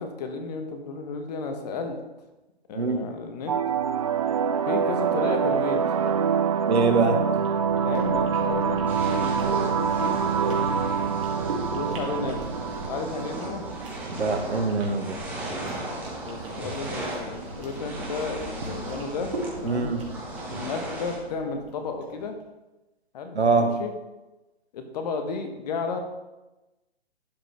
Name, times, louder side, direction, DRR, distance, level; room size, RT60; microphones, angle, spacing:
voice 1, 0.0-2.0 2.7-3.6 4.7-6.2 7.8-10.2 10.5-10.8 11.7-12.4 12.8-13.6 16.2-19.3 19.6-19.9 20.5-22.4 23.1-23.5 23.8-23.9 24.7-26.0, left 4 dB, 40° left, 5 dB, 1.2 m, -33 dB
voice 2, 2.7-3.1 6.7-7.2 14.2-15.2 19.6-20.0 23.3-23.7, right 3 dB, 90° right, 6 dB, 1.3 m, -23 dB
sound 1, 3.5-14.5, right 7 dB, 35° right, 0.4 m, -26 dB
sound 2, 7.0-22.2, right 2 dB, 60° right, 2.5 m, -39 dB
sound 3, 8.9-21.2, right 1 dB, 5° right, 1.7 m, -37 dB
12.0 x 5.0 x 3.5 m, 1.1 s
hypercardioid pair, 145°, 32 cm